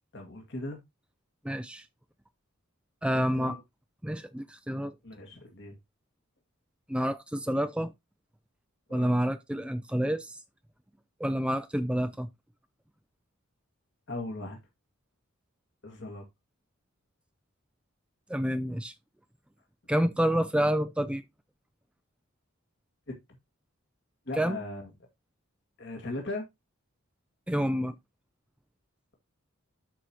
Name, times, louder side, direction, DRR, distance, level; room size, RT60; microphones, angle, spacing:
voice 1, 0.1-0.8 3.1-3.6 5.0-5.8 8.9-9.2 14.1-14.6 15.8-16.2 23.1-23.2 24.3-24.9 25.8-26.5, left 2 dB, 55° left, 1.9 m, -38 dB
voice 2, 1.4-1.9 3.0-3.6 4.0-5.0 6.9-7.9 8.9-10.4 11.2-12.3 18.3-18.9 19.9-21.2 24.4-24.6 27.5-27.9, equal, 5° right, 0.4 m, -28 dB
12.5 x 4.8 x 2.9 m
head